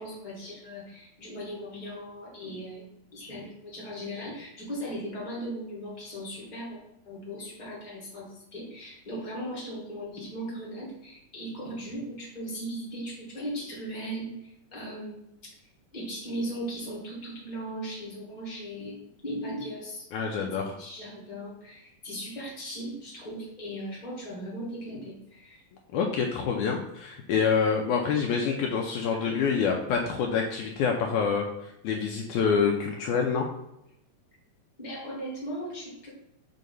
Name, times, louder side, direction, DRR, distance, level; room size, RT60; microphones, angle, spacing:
voice 1, 0.0-6.8 7.0-15.3 15.9-20.1 20.4-25.6 29.1-29.6 34.8-36.1, equal, 35° left, -4 dB, 0.7 m, -38 dB
voice 2, 20.1-20.8 25.9-33.5, left 6 dB, 80° left, 1 dB, 1.9 m, -27 dB
6.5 x 2.8 x 5.3 m, 0.82 s
omnidirectional pair, 3.7 m